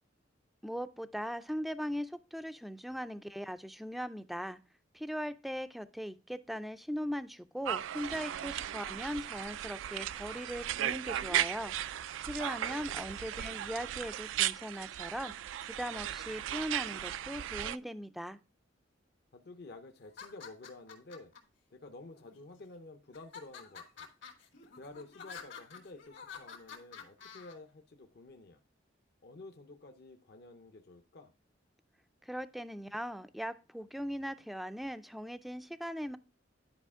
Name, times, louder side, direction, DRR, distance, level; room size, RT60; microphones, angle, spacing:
voice 1, 0.6-4.6 4.9-15.3 15.6-18.4 32.2-36.2, equal, ahead, 0.3 m, -39 dB
sound 1, 7.7-17.8, right 11 dB, 85° right, 0.3 m, -36 dB
voice 2, 12.6-13.2 19.3-21.3 21.7-24.1 24.8-28.6 29.2-31.3, left 2 dB, 55° left, 0.6 m, -51 dB
sound 2, 20.0-21.4 22.1-22.7 23.1-27.5, left 6 dB, 75° left, 2.0 m, -49 dB
11.0 x 4.9 x 3.5 m
head